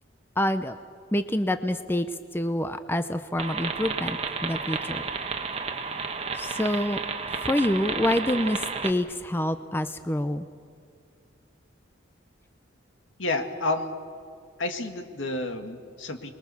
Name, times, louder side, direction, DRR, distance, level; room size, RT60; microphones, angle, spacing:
voice 1, 0.4-0.8 1.1-2.1 2.3-5.0 6.3-7.0 7.3-10.4, left 1 dB, 10° left, 9 dB, 0.6 m, -27 dB
sound 1, 3.4-8.9, right 5 dB, 30° right, 1.2 m, -32 dB
voice 2, 13.2-14.0 14.6-16.3, left 2 dB, 80° left, 6 dB, 2.0 m, -30 dB
29.5 x 21.5 x 7.0 m, 2.3 s
head